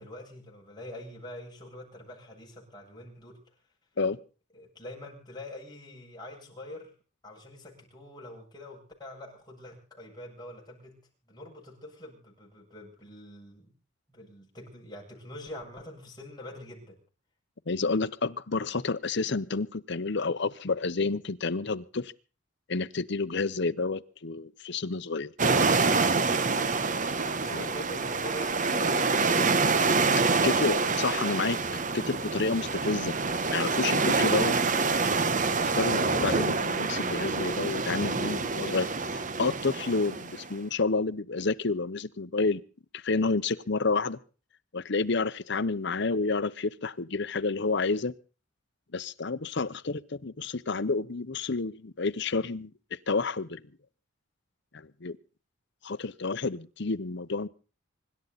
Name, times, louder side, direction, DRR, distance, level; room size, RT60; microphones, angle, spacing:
voice 1, 0.0-3.4 4.5-6.9 7.2-11.0 11.2-13.7 14.1-17.0 27.2-30.5, left 1 dB, 20° left, -2 dB, 7.7 m, -45 dB
voice 2, 17.7-22.1 22.7-25.3 27.5-27.6 30.4-31.6 31.9-33.1 33.5-34.9 35.6-42.6 42.9-44.2 44.7-48.1 48.9-53.6 54.7-55.2 55.8-57.5, left 3 dB, 60° left, 13 dB, 0.9 m, -30 dB
sound 1, 25.4-40.5, right 4 dB, 40° right, 1.1 m, -26 dB
25.5 x 12.0 x 4.1 m, 0.37 s
head